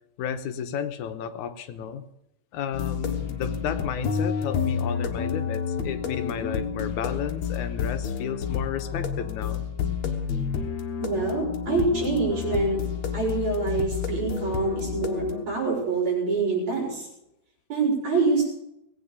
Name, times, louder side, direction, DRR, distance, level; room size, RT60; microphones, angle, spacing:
voice 1, 0.2-2.0 2.5-9.7, left 8 dB, 80° left, 9 dB, 2.4 m, -32 dB
sound 1, 2.7-15.4, left 7 dB, 65° left, 2.7 m, -30 dB
voice 2, 11.0-12.8 13.1-17.1 17.7-18.5, right 3 dB, 65° right, -3 dB, 6.1 m, -25 dB
20.0 x 8.8 x 6.8 m, 0.82 s
omnidirectional pair, 3.4 m